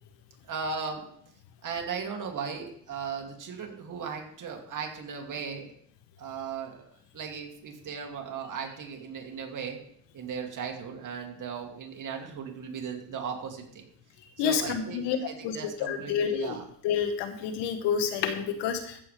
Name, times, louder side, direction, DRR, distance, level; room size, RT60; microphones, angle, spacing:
voice 1, 0.4-1.1 1.6-5.7 6.2-9.8 10.1-13.9 14.4-16.7, right 6 dB, 45° right, 2 dB, 2.6 m, -37 dB
voice 2, 14.4-15.2 15.4-16.5 16.8-19.0, left 7 dB, 75° left, 7 dB, 1.5 m, -29 dB
14.5 x 7.4 x 3.4 m, 0.68 s
cardioid pair, 100°, 42 cm